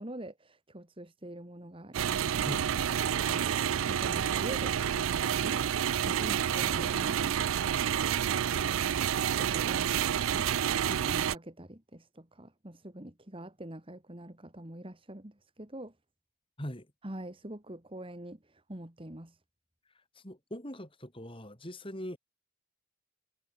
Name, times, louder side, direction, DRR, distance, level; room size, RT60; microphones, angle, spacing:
voice 1, 0.0-2.6 3.3-3.6 3.9-5.8 6.0-7.4 9.2-9.9 10.3-10.5 10.8-15.9 17.0-19.4, right 1 dB, 25° right, 2.0 m, -45 dB
sound 1, 1.9-11.4, right 9 dB, 85° right, 0.4 m, -29 dB
voice 2, 2.4-2.8 16.6-16.9 20.2-22.2, equal, 25° left, 7.8 m, -41 dB
head